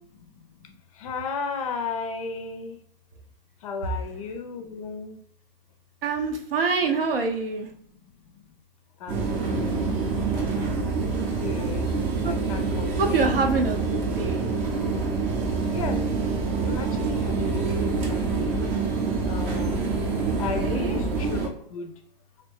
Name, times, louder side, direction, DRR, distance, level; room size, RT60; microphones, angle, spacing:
voice 1, 0.2-2.8 3.6-5.2 8.2-8.5 9.0-9.9 10.2-10.9 11.4-11.9 12.2-13.6 15.7-16.0 16.7-18.7 19.3-19.9 20.4-21.9, left 4 dB, 35° left, 6 dB, 0.4 m, -35 dB
voice 2, 6.0-7.7 12.2-12.4 13.0-14.5 20.5-21.0, right 4 dB, 65° right, 4 dB, 0.7 m, -26 dB
sound 1, 9.1-21.5, right 4 dB, 30° right, 0.6 m, -26 dB
3.0 x 2.6 x 3.4 m, 0.67 s
figure-of-eight pair, 110°, 30 cm